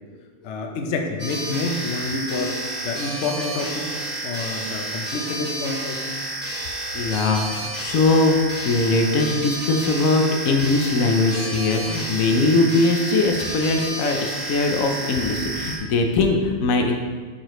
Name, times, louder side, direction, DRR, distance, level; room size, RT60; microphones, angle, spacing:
voice 1, 0.4-2.6 2.8-6.2, left 3 dB, 65° left, 3 dB, 1.0 m, -28 dB
sound 1, 1.2-15.8, right 1 dB, 10° right, 1.0 m, -30 dB
voice 2, 6.9-8.4 8.6-16.9, left 3 dB, 85° left, 3 dB, 1.1 m, -21 dB
8.5 x 4.9 x 3.1 m, 1.5 s
omnidirectional pair, 1.4 m